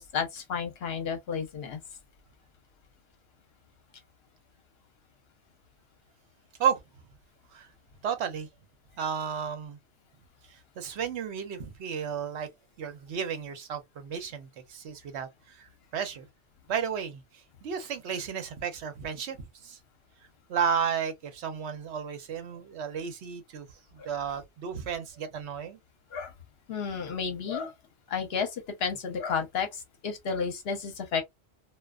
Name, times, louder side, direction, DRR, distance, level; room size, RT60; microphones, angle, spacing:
voice 1, 0.0-1.8 24.0-24.1 26.1-26.3 26.7-27.7 28.1-31.2, left 6 dB, 65° left, 0.9 m, -32 dB
voice 2, 8.0-8.5 9.0-9.8 10.8-12.5 12.8-15.7 15.9-16.3 16.7-17.2 17.6-19.4 19.6-19.8 20.5-23.7 23.9-25.8, right 7 dB, 75° right, 0.9 m, -32 dB
2.4 x 2.3 x 2.2 m
omnidirectional pair, 1.2 m